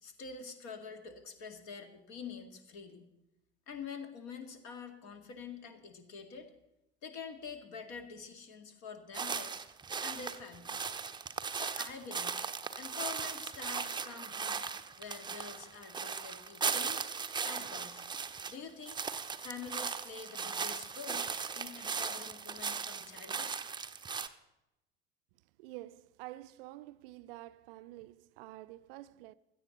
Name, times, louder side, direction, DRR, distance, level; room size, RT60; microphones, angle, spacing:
voice 1, 0.0-3.1 3.7-6.5 7.0-9.6 10.0-10.9 11.5-12.4 12.8-14.7 15.0-17.0 17.4-18.0 18.5-19.0 19.4-21.3 21.5-23.5, left 5 dB, 50° left, 2.1 m, -46 dB
sound 1, 9.1-18.5 18.8-24.3, right 5 dB, 10° right, 0.7 m, -38 dB
voice 2, 25.6-29.3, right 17 dB, 50° right, 0.5 m, -48 dB
17.0 x 13.0 x 4.0 m
figure-of-eight pair, 65°, 36 cm